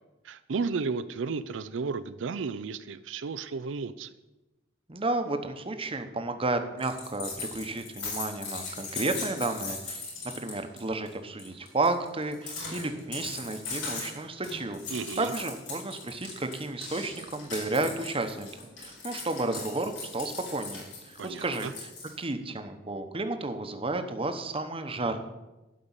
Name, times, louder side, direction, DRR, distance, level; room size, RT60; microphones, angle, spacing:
voice 1, 0.2-4.1 14.9-15.3 21.2-21.7, right 4 dB, 85° right, 12 dB, 0.5 m, -33 dB
voice 2, 4.9-10.0 10.4-14.8 15.2-18.5 18.8-21.7 22.2-25.2, right 2 dB, 30° right, 8 dB, 1.0 m, -32 dB
sound 1, 6.8-10.8 11.1-11.2 11.4-22.2, left 4 dB, 90° left, 4.8 m, -39 dB
12.0 x 5.2 x 8.8 m, 1.0 s
head